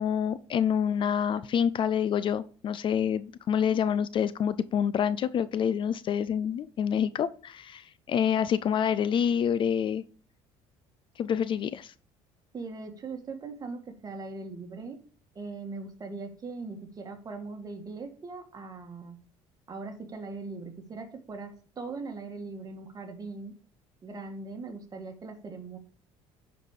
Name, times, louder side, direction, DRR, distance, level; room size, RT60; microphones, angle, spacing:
voice 1, 0.0-10.0 11.2-11.9, left 8 dB, 45° left, 16 dB, 0.4 m, -27 dB
voice 2, 12.5-15.0 15.3-19.2 19.7-23.5 24.0-25.8, right 3 dB, 30° right, 4 dB, 1.6 m, -40 dB
10.0 x 4.2 x 4.9 m, 0.43 s
cardioid pair, 110°, 12 cm